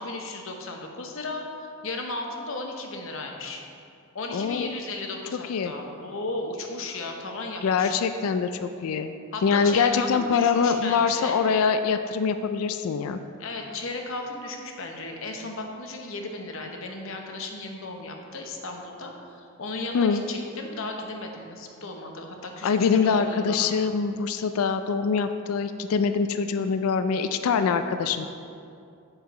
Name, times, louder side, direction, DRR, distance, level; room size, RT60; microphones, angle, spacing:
voice 1, 0.0-3.6 4.1-8.0 9.3-11.4 13.4-23.7, left 2 dB, 60° left, 2 dB, 0.8 m, -35 dB
voice 2, 4.3-4.7 5.5-5.7 7.6-9.1 9.4-13.2 19.9-20.2 22.6-28.3, left 5 dB, 75° left, 9 dB, 0.4 m, -24 dB
8.0 x 5.6 x 4.2 m, 2.5 s
head